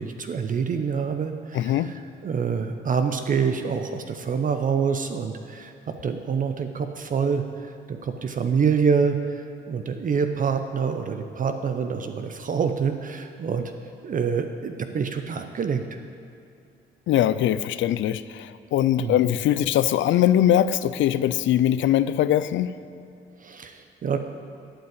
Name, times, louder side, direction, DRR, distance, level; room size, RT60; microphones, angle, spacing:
voice 1, 0.0-13.7 14.0-16.0 19.0-19.2 23.4-24.2, right 6 dB, 45° right, 7 dB, 0.6 m, -26 dB
voice 2, 1.5-1.9 17.1-22.7, left 11 dB, 70° left, 15 dB, 0.4 m, -21 dB
11.5 x 5.4 x 8.7 m, 2.4 s
cardioid pair, 90°, 20 cm